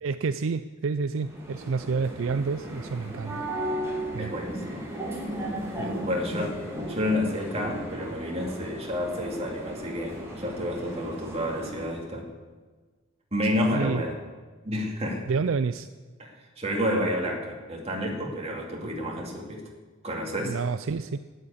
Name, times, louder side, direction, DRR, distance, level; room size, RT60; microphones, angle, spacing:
voice 1, 0.0-3.4 4.1-4.3 5.8-5.9 13.7-14.0 15.3-15.9 20.4-21.2, right 4 dB, 65° right, 12 dB, 0.4 m, -29 dB
sound 1, 1.2-12.0, right 1 dB, 15° right, 3.0 m, -35 dB
voice 2, 4.2-4.9 6.0-6.6 6.9-12.3 13.3-14.2 14.6-15.2 16.2-19.6 20.0-20.6, left 1 dB, 30° right, -1 dB, 2.7 m, -30 dB
12.5 x 10.0 x 8.5 m, 1.4 s
head